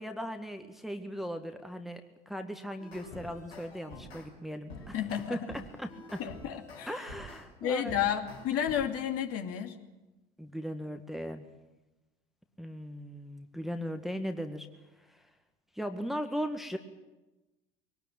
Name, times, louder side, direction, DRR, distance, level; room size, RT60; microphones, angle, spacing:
voice 1, 0.0-2.0 2.3-5.0 5.3-5.4 5.8-6.2 6.9-8.0 10.4-11.5 12.6-14.7 15.0-15.2 15.8-16.8, equal, ahead, 5 dB, 1.8 m, -38 dB
sound 1, 2.8-4.3 4.7-7.5 7.9-8.8, left 2 dB, 85° left, 6.0 m, -47 dB
voice 2, 4.9-5.4 6.2-7.0 7.6-9.8, left 9 dB, 50° left, 5 dB, 2.6 m, -31 dB
22.0 x 19.0 x 8.9 m, 1.1 s
hypercardioid pair, 70°, 31 cm